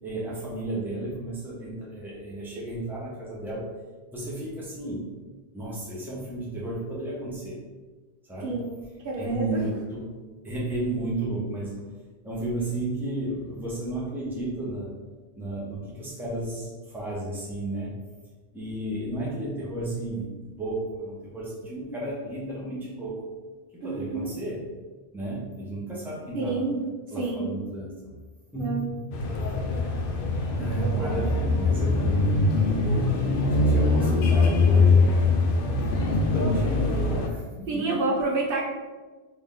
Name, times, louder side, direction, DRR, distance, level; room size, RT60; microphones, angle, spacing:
voice 1, 0.0-3.6 4.1-5.1 5.5-7.6 8.3-8.6 9.2-10.1 10.4-11.8 12.2-14.9 15.4-17.9 18.5-23.2 23.7-24.7 25.1-26.7 27.1-28.1 28.5-29.0 30.5-33.1 33.4-35.5 36.0-38.0, right 1 dB, ahead, -5 dB, 0.7 m, -33 dB
voice 2, 9.0-9.6 23.8-24.3 26.3-26.8 27.2-27.5 28.5-28.9 30.6-31.3 37.7-38.6, right 3 dB, 65° right, -2 dB, 0.8 m, -29 dB
Street Santa Marta-Colombia, 29.1-37.3, left 3 dB, 65° left, 0.7 m, -22 dB
3.4 x 2.7 x 3.6 m, 1.3 s
omnidirectional pair, 1.1 m